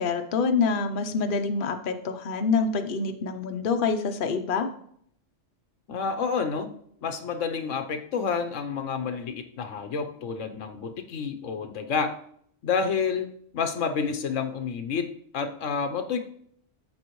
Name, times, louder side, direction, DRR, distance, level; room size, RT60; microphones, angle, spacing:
voice 1, 0.0-4.7, left 4 dB, 50° left, 6 dB, 0.9 m, -26 dB
voice 2, 5.9-6.7 7.0-12.1 12.6-16.2, left 5 dB, 80° left, 8 dB, 1.2 m, -29 dB
11.5 x 7.7 x 3.1 m, 0.65 s
omnidirectional pair, 1.3 m